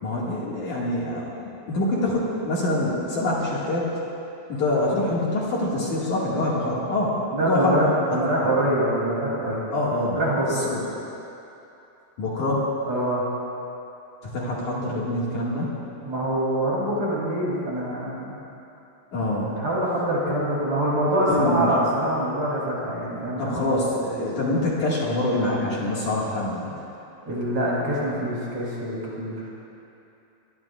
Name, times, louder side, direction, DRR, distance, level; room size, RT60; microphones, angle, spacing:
voice 1, 0.0-3.9 4.5-8.5 9.7-10.8 12.2-12.7 14.2-15.8 19.1-19.5 21.3-21.7 23.4-26.7, left 1 dB, 50° left, -6 dB, 2.6 m, -25 dB
voice 2, 7.3-9.6 10.1-10.6 12.9-13.3 16.0-18.4 19.5-23.7 24.1-24.3 27.3-29.7, right 1 dB, 35° right, -6 dB, 4.3 m, -25 dB
24.0 x 20.0 x 2.5 m, 2.9 s
omnidirectional pair, 5.8 m